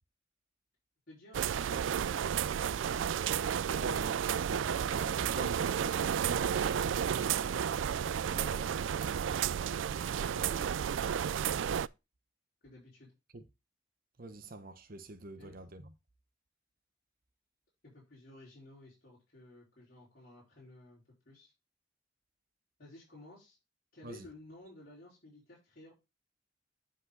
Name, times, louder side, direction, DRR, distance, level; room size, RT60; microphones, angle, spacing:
voice 1, 1.1-3.1 9.3-11.6 12.6-13.1 15.4-15.6 17.8-21.5 22.8-23.6 23.9-25.9, left 2 dB, 50° left, 4.6 m, -55 dB
sound 1, 1.3-11.9, right 8 dB, 75° right, 0.4 m, -32 dB
voice 2, 3.8-4.6 4.9-7.8 8.3-8.7 13.3-13.4 14.2-15.8 24.0-24.2, right 2 dB, 50° right, 0.9 m, -45 dB
9.9 x 5.4 x 4.0 m
head